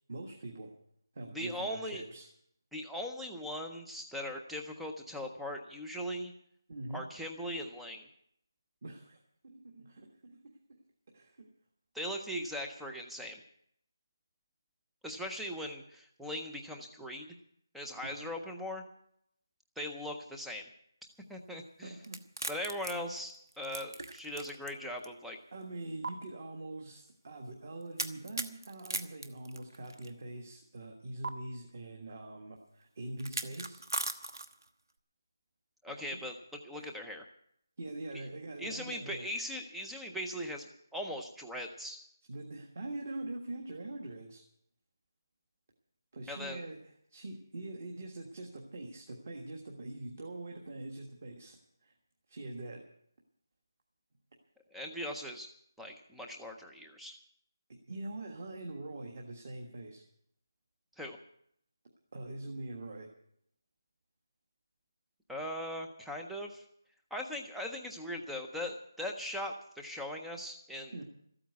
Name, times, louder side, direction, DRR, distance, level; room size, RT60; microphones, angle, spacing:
voice 1, 0.1-0.7 1.1-2.3 6.7-7.0 8.8-10.8 11.1-11.5 18.0-18.3 21.8-22.2 25.5-33.8 36.8-36.9 37.8-39.3 42.3-44.4 46.1-46.8 47.1-51.9 52.3-52.8 57.9-60.0 62.1-63.1 70.9-71.0, right 2 dB, 30° right, 1 dB, 1.5 m, -43 dB
voice 2, 1.3-2.0 2.7-6.3 6.9-8.1 11.9-13.4 15.0-17.3 17.7-18.8 19.8-20.6 21.3-21.9 22.5-25.4 35.8-36.3 36.6-37.2 38.1-38.2 38.6-42.0 46.3-46.6 54.7-55.5 55.8-57.2 61.0-61.2 65.3-66.6 67.1-71.0, left 1 dB, ahead, 2 dB, 0.5 m, -40 dB
sound 1, 22.0-24.7 25.0-25.1 26.0-26.1 28.0-30.1 31.2-31.3 33.2-34.7, right 2 dB, 70° right, 1.2 m, -38 dB
13.5 x 8.8 x 9.3 m, 0.71 s
figure-of-eight pair, 175°, 2 cm